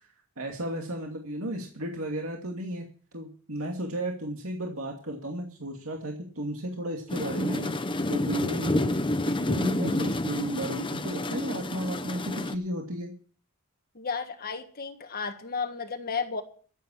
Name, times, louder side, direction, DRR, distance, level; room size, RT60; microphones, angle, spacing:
voice 1, 0.4-2.9 3.1-7.8 8.1-9.0 9.4-13.1, right 1 dB, 65° right, 1 dB, 2.5 m, -34 dB
sound 1, 7.1-12.5, left 1 dB, 20° left, 0.9 m, -29 dB
voice 2, 13.9-16.4, left 5 dB, 45° left, 7 dB, 1.5 m, -33 dB
14.0 x 8.5 x 7.3 m, 0.42 s
head